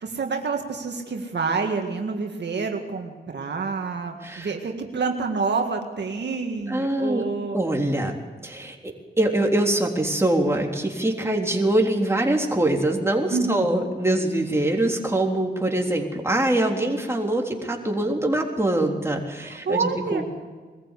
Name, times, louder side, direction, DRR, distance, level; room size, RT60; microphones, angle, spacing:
voice 1, 0.0-7.6 13.3-13.7 19.4-20.2, right 4 dB, 70° right, 3 dB, 1.9 m, -28 dB
voice 2, 6.7-7.2 7.5-8.1 8.4-8.9 9.2-20.2, right 1 dB, 15° right, 1 dB, 3.6 m, -23 dB
21.5 x 14.5 x 8.4 m, 1.4 s
cardioid pair, 60°, 19 cm